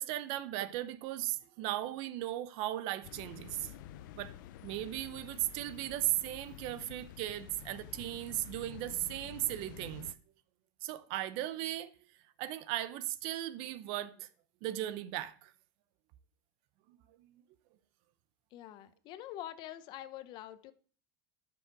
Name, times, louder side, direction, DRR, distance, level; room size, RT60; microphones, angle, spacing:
voice 1, 0.0-3.7 4.2-4.3 4.6-10.0 10.8-11.9 12.4-14.3 14.6-15.5 16.9-17.4, right 14 dB, 60° right, 0.7 m, -37 dB
sound 1, 3.0-10.1, left 11 dB, 90° left, 0.6 m, -50 dB
voice 2, 18.5-20.7, left 13 dB, 45° left, 0.7 m, -45 dB
9.6 x 6.2 x 4.6 m
cardioid pair, 155°, 10 cm